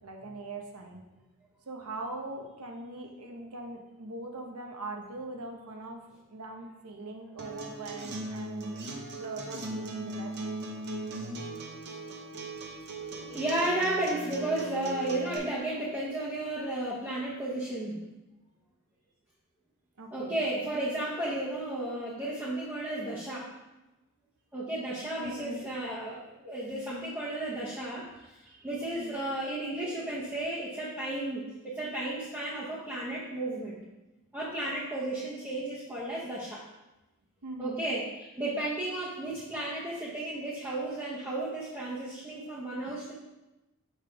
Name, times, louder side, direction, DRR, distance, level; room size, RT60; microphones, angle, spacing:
voice 1, 0.0-1.1 1.7-6.0 6.3-8.8 9.1-10.3 20.0-20.4 25.2-25.6 28.5-29.2 37.4-37.8, right 2 dB, 80° right, 2 dB, 0.9 m, -41 dB
Acoustic guitar, 7.4-15.4, right 2 dB, 50° right, 0.8 m, -38 dB
voice 2, 13.1-18.0 20.1-23.5 24.5-28.3 28.6-33.8 34.3-36.6 37.6-43.1, right 1 dB, 10° right, -9 dB, 0.9 m, -33 dB
5.4 x 5.2 x 3.5 m, 1.0 s
head